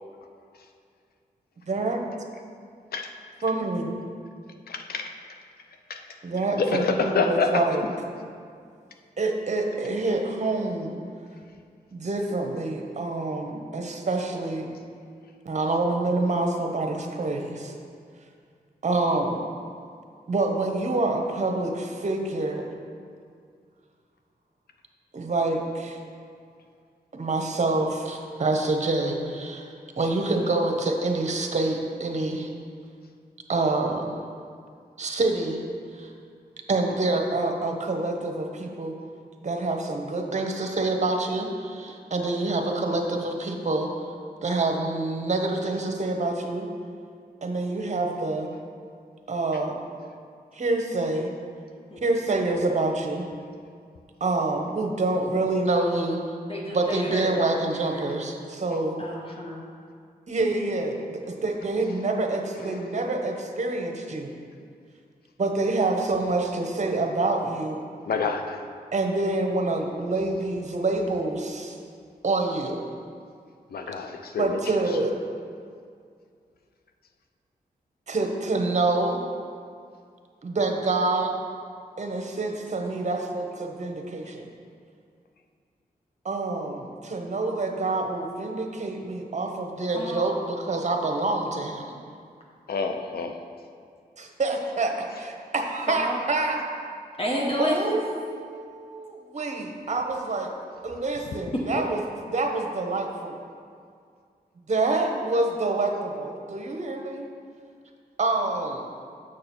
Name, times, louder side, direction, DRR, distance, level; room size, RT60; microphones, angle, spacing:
voice 1, 1.7-2.0 3.4-3.9 6.2-7.8 9.2-11.0 11.9-14.7 15.4-17.7 18.8-19.4 20.3-22.7 25.1-26.0 27.1-29.7 30.0-32.5 33.5-34.1 35.0-35.6 35.9-36.1 36.7-38.9 39.4-43.9 44.4-46.7 47.4-48.5 49.3-49.8 50.5-51.3 52.0-53.2 54.2-56.2 56.7-59.0 60.3-64.3 65.4-67.8 68.9-71.8 72.2-72.8 74.4-75.2 78.1-79.2 80.4-81.3 82.0-84.5 86.2-91.9 94.2-94.9 95.2-96.6 97.6-100.5 100.8-102.0 102.3-103.4 104.7-107.3 108.2-108.8, right 2 dB, 45° right, 3 dB, 1.0 m, -27 dB
voice 2, 6.6-7.6 68.1-68.6 73.7-74.6 92.7-93.4, left 5 dB, 75° left, 5 dB, 0.7 m, -27 dB
voice 3, 56.5-57.4 57.7-58.1 59.0-59.7 62.6-63.1 83.8-83.9 89.9-90.3 95.9-96.2 97.2-98.0 101.7-101.9, left 1 dB, 35° left, -3 dB, 1.1 m, -31 dB
6.6 x 6.2 x 4.4 m, 2.2 s
cardioid pair, 50°, 16 cm